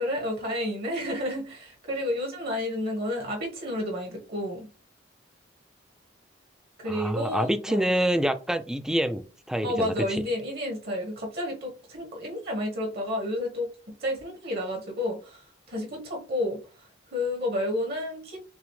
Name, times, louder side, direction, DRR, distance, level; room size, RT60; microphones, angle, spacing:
voice 1, 0.0-4.7 6.8-7.9 9.6-13.7 14.0-18.4, left 1 dB, 55° right, 1.3 m, -31 dB
voice 2, 6.9-10.2, equal, 5° right, 0.3 m, -27 dB
5.9 x 2.1 x 3.1 m
head